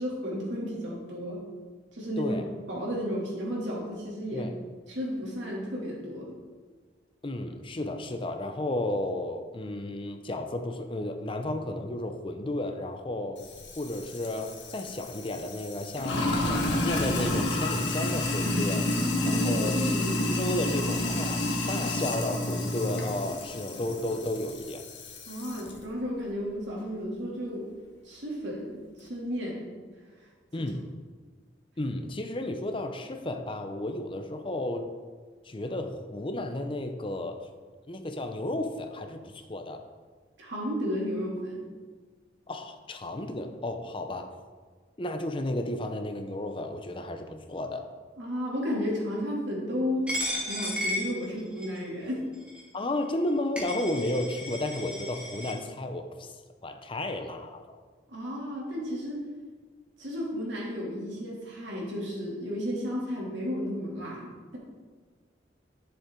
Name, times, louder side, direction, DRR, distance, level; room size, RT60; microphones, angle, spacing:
voice 1, 0.0-1.4 1.9-2.3 2.7-4.5 4.9-6.4 18.9-20.4 25.3-27.7 28.0-29.7 40.4-41.7 48.2-50.1 50.5-52.2 58.1-59.2 60.0-64.6, equal, 85° right, -4 dB, 2.8 m, -33 dB
voice 2, 7.2-13.4 13.8-18.9 19.2-19.8 20.3-24.8 30.5-30.9 31.8-34.9 35.4-37.4 37.9-39.8 42.5-44.3 45.0-47.9 52.7-56.3 56.6-57.6, left 1 dB, 30° left, 6 dB, 0.6 m, -33 dB
Sink (filling or washing), 13.4-25.7, left 1 dB, 80° left, 1.5 m, -30 dB
Coin (dropping), 50.1-51.8 52.5-52.6 53.3-53.4 53.6-55.5, left 1 dB, 5° right, 2.0 m, -34 dB
11.0 x 7.0 x 3.8 m, 1.5 s
head